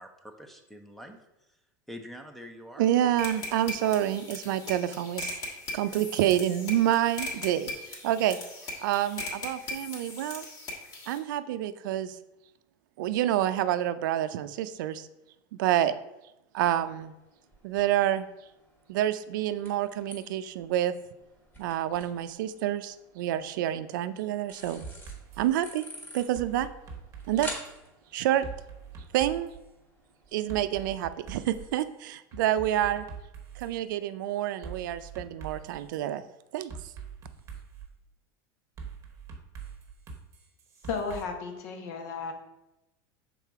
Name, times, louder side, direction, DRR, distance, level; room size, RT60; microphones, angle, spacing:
voice 1, 0.0-1.6 1.9-2.9 3.2-3.4, equal, ahead, 5 dB, 0.6 m, -46 dB
voice 2, 2.8-5.4 5.7-8.4 8.8-10.5 11.1-12.2 13.0-15.1 15.6-15.9 16.5-17.1 17.6-18.3 18.9-20.9 21.6-24.8 25.4-25.8 26.1-26.7 27.3-27.5 28.1-28.5 29.1-29.5 30.3-33.1 33.6-36.2 36.5-36.7, right 12 dB, 80° right, 12 dB, 0.4 m, -28 dB
sound 1, 3.2-11.2, left 2 dB, 40° left, 1.4 m, -39 dB
sound 2, 16.6-30.7, left 1 dB, 20° left, 1.4 m, -49 dB
sound 3, 24.8-25.5 26.3-27.8 28.4-29.6 30.5-31.8 32.3-33.7 34.6-36.0 36.7-37.9 38.8-41.2, right 6 dB, 30° right, 1.0 m, -43 dB
voice 3, 40.9-42.3, left 5 dB, 65° left, 5 dB, 1.1 m, -34 dB
5.7 x 3.8 x 4.6 m, 0.93 s
supercardioid pair, 140°, 10 cm